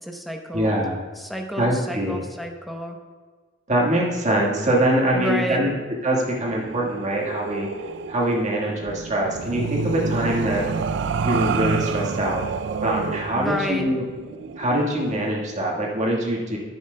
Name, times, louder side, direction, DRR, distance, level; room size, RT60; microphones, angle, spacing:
voice 1, 0.0-0.7 1.2-3.0 5.1-5.7 13.3-13.9, equal, ahead, 2 dB, 0.7 m, -29 dB
voice 2, 0.5-1.0 1.6-2.2 3.7-5.7 6.0-7.7 8.1-10.6 11.2-12.4 12.8-14.0 14.6-16.6, right 1 dB, 40° right, -3 dB, 1.6 m, -23 dB
sound 1, 6.3-15.3, right 5 dB, 65° right, 0.4 m, -29 dB
10.5 x 10.0 x 2.2 m, 1.4 s
head